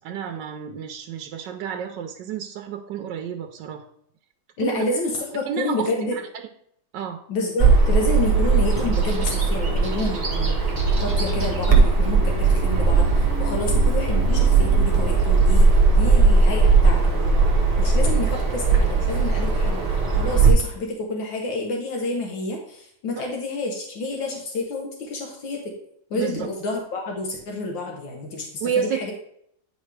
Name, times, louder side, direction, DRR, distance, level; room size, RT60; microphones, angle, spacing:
voice 1, 0.0-3.8 4.6-4.8 5.5-6.2 6.9-7.2 23.2-23.3 26.1-26.5 28.6-29.1, right 8 dB, 75° right, 5 dB, 1.2 m, -30 dB
voice 2, 4.6-6.2 7.3-17.4 17.8-19.8 20.2-25.7 26.1-29.1, left 2 dB, 80° left, 1 dB, 1.8 m, -29 dB
Bird vocalization bird call bird song, 7.6-20.5, right 4 dB, 30° right, 0.8 m, -18 dB
sound 1, 10.4-16.8 17.1-17.2, left 1 dB, 25° left, 1.9 m, -33 dB
9.2 x 4.7 x 3.3 m, 0.70 s
omnidirectional pair, 2.0 m